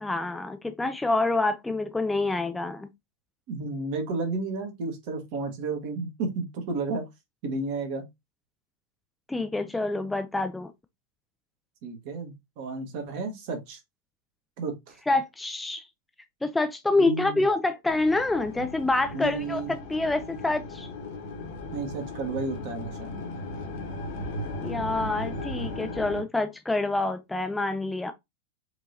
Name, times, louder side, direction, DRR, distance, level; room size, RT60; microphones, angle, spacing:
voice 1, 0.0-2.9 9.3-10.7 15.1-15.9 16.4-20.9 24.6-28.1, left 2 dB, 5° left, 0.4 m, -27 dB
voice 2, 3.5-7.1 7.4-8.0 11.8-13.8 14.6-15.0 17.0-17.4 19.1-19.7 21.7-23.0, right 3 dB, 45° right, 1.2 m, -32 dB
sound 1, 17.8-26.2, left 2 dB, 50° left, 1.0 m, -36 dB
4.6 x 2.8 x 2.6 m
figure-of-eight pair, 90°, 0 cm